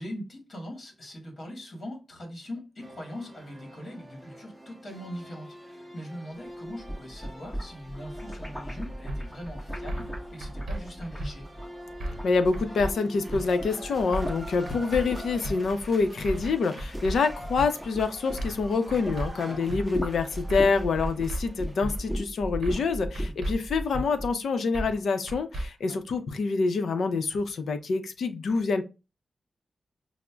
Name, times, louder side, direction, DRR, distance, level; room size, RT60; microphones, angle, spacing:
voice 1, 0.0-11.5 19.5-19.6 23.2-23.4 25.9-26.0, equal, 40° left, 1.4 m, -41 dB
sound 1, 2.8-22.2, equal, 10° right, 0.6 m, -45 dB
sound 2, 6.7-12.9 13.2-19.2 19.5-24.3, equal, 15° left, 1.3 m, -37 dB
sound 3, 9.1-9.2 9.9-10.1 10.4-10.8 11.2-11.3 12.0-12.3 12.5-12.9 13.3-13.4 14.1-14.4 14.6-15.0 15.4-15.6 16.2-16.5 16.8-17.2 17.6-17.7 18.4-18.6 18.9-19.3 19.7-19.8 20.5-20.8 21.0-21.4 21.8-21.9 22.6-22.9 23.1-23.5 23.9-24.1 24.7-25.0 25.3-25.7, right 1 dB, 60° right, 0.7 m, -33 dB
voice 2, 12.2-28.8, left 4 dB, 80° left, 0.6 m, -26 dB
6.0 x 2.1 x 2.2 m
wide cardioid pair, 140°, 0 cm